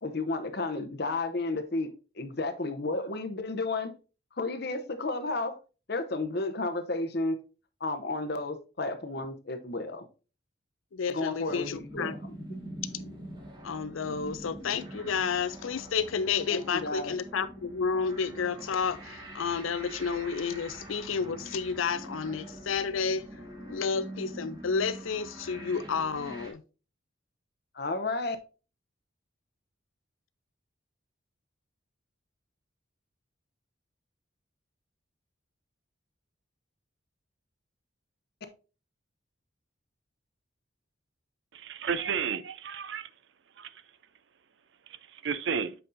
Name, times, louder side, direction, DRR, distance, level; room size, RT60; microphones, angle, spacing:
voice 1, 0.0-3.9 4.4-5.6 5.9-7.4 7.8-10.0 11.1-12.2 16.5-17.1 27.7-28.4, left 2 dB, 50° left, 0.8 m, -32 dB
voice 2, 10.9-12.1 13.6-23.2 23.7-26.6, left 5 dB, 80° left, 0.5 m, -31 dB
sound 1, 11.5-26.5, right 1 dB, 20° right, 1.2 m, -44 dB
voice 3, 41.5-43.1 43.6-43.7 45.2-45.7, right 6 dB, 60° right, 0.5 m, -32 dB
7.8 x 5.3 x 2.6 m
head